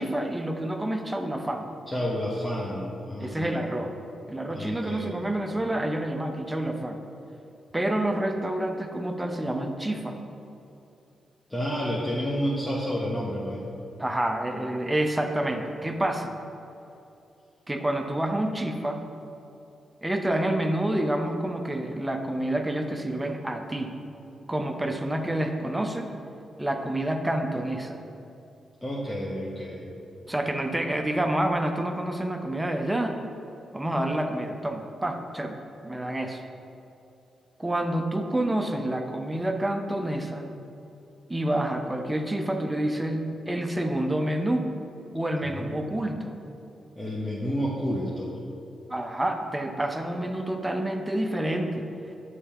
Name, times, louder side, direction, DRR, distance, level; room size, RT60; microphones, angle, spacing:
voice 1, 0.0-1.7 3.2-3.9 4.3-7.0 7.7-10.2 14.0-16.4 17.7-19.0 20.0-23.9 24.5-26.1 26.6-28.0 30.3-33.2 33.7-35.6 35.8-36.4 37.6-40.5 41.3-44.7 45.1-46.3 48.9-51.8, right 1 dB, 15° right, 5 dB, 0.6 m, -28 dB
voice 2, 1.9-3.5 4.5-5.1 11.5-13.6 28.8-29.9 45.5-45.8 47.0-48.4, equal, 20° left, -6 dB, 1.0 m, -30 dB
7.2 x 3.3 x 4.4 m, 2.8 s
supercardioid pair, 45°, 0 cm